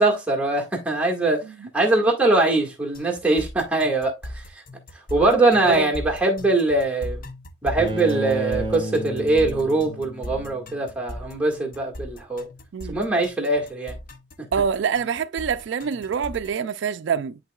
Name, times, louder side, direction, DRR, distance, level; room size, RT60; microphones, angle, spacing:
voice 1, 0.0-1.4 1.7-4.4 5.1-7.2 7.6-12.5 12.9-13.9, right 2 dB, 5° right, 1.7 m, -22 dB
sound 1, 2.9-16.6, left 1 dB, 45° left, 0.7 m, -37 dB
Bowed string instrument, 7.8-10.8, right 1 dB, 25° right, 1.1 m, -31 dB
voice 2, 14.5-17.4, right 6 dB, 65° right, 0.3 m, -25 dB
11.0 x 3.8 x 2.3 m
head